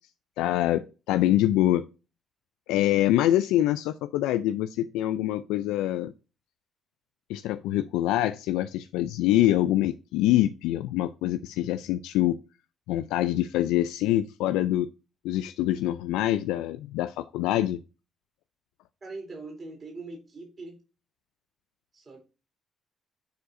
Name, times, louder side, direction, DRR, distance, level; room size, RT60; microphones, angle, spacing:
voice 1, 0.4-1.8 2.7-6.1 7.3-12.4 12.9-14.9 15.2-17.8, left 13 dB, 85° left, 0.3 m, -25 dB
voice 2, 19.0-20.8 21.9-22.2, right 3 dB, 40° right, 3.9 m, -41 dB
10.0 x 4.6 x 2.5 m
supercardioid pair, 60°, 0 cm